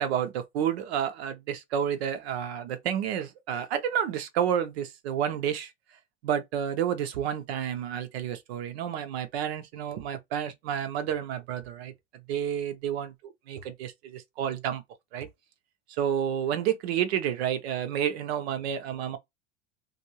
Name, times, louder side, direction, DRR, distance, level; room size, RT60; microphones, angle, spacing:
voice 1, 0.0-5.7 6.2-11.9 12.3-13.1 13.5-14.8 15.1-15.3 16.0-19.2, right 9 dB, 90° right, 0.8 m, -30 dB
2.7 x 2.6 x 2.9 m
supercardioid pair, 165°, 31 cm